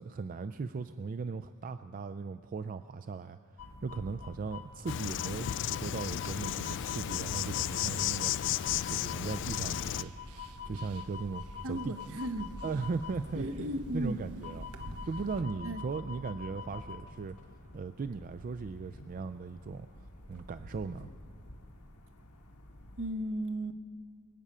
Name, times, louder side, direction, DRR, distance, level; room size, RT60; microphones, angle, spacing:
voice 1, 0.0-8.3 8.9-12.0 12.6-13.4 13.9-14.7 15.0-17.4 17.7-21.1, right 4 dB, 40° right, 11 dB, 0.4 m, -38 dB
sound 1, 3.6-23.1, left 5 dB, 85° left, 1.4 m, -47 dB
Insect, 4.9-10.0, left 11 dB, 55° left, 0.3 m, -34 dB
sound 2, 6.0-15.4, right 1 dB, 85° right, 1.1 m, -49 dB
voice 2, 11.6-12.5 13.3-14.2 15.6-15.8 23.0-23.8, right 1 dB, 65° right, 9 dB, 1.0 m, -35 dB
24.0 x 8.6 x 5.5 m, 2.4 s
head